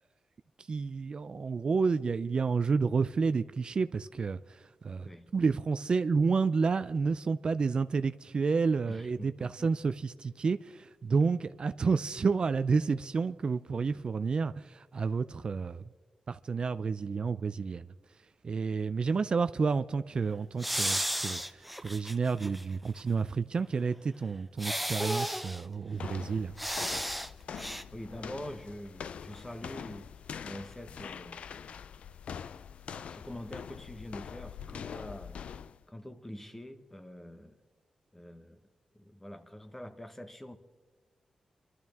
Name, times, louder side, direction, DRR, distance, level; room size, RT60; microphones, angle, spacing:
voice 1, 0.7-15.8 16.3-17.9 18.4-26.6, right 5 dB, 50° right, 0.4 m, -30 dB
voice 2, 5.0-5.3 8.9-9.7 11.2-11.4 27.9-30.1 30.4-31.5 33.1-35.4 35.9-37.6 38.1-38.7 39.0-40.6, equal, 15° left, 1.2 m, -45 dB
sound 1, 20.6-22.6 23.0-23.1 24.6-25.6 26.6-27.3 27.5-27.8, equal, ahead, 0.6 m, -33 dB
sound 2, 25.9-35.8, left 7 dB, 80° left, 0.4 m, -44 dB
24.0 x 12.5 x 3.6 m
cardioid pair, 85°, 2 cm